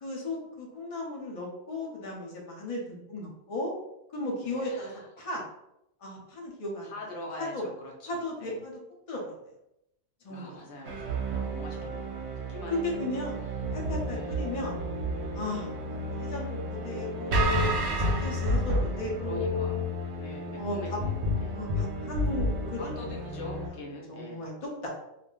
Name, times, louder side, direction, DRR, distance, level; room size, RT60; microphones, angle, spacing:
voice 1, 0.0-3.7 4.1-4.9 5.2-5.4 6.0-6.9 7.4-7.7 8.1-8.8 9.1-9.4 10.2-10.7 11.7-11.8 12.7-13.4 13.7-14.8 15.3-15.7 16.0-19.8 20.5-21.0 21.5-22.9 23.6-23.8 24.1-24.9, left 2 dB, 35° left, -2 dB, 0.7 m, -35 dB
voice 2, 4.4-5.1 6.8-8.1 8.4-8.6 10.3-13.2 14.1-14.4 19.2-21.6 22.8-24.5, left 2 dB, 80° left, -1 dB, 1.0 m, -43 dB
sound 1, 10.8-23.7, equal, 80° right, 0.9 m, -31 dB
2.4 x 2.1 x 3.6 m, 0.82 s
omnidirectional pair, 1.1 m